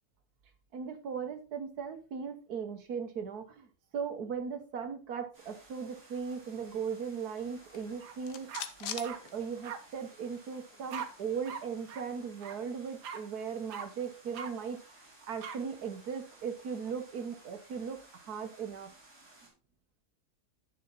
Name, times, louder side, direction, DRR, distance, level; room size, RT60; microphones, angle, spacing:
voice 1, 0.7-3.7 3.9-14.8 15.2-18.9, right 6 dB, 70° right, 8 dB, 1.7 m, -38 dB
sound 1, 5.3-19.5, right 2 dB, 35° right, 3.4 m, -58 dB
sound 2, 7.6-10.0 10.3-10.4 10.7-12.6, left 9 dB, 90° left, 1.5 m, -45 dB
sound 3, 8.0-8.2 8.5-9.2 9.6-9.8 10.9-11.1 11.5-11.6 11.9-12.0 12.4-12.6 13.0-13.2 13.7-13.9 14.3-14.5 15.4-15.6, right 7 dB, 90° right, 1.6 m, -40 dB
10.0 x 5.9 x 4.0 m, 0.34 s
omnidirectional pair, 1.7 m